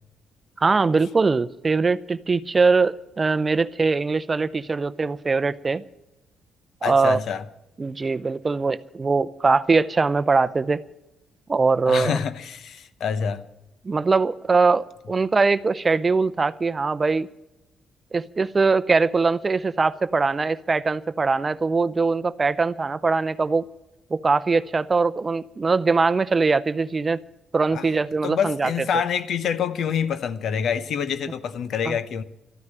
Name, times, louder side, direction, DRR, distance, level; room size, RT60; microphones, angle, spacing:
voice 1, 0.6-5.8 6.8-7.2 7.8-10.8 11.5-12.2 13.8-17.3 18.1-23.6 24.1-27.2 27.5-28.7 31.9-32.0, right 4 dB, 30° right, 0.6 m, -21 dB
voice 2, 6.8-7.4 11.9-13.4 27.7-27.9 28.2-32.2, left 7 dB, 65° left, 0.9 m, -26 dB
13.5 x 9.7 x 8.9 m
cardioid pair, 90°, 0 cm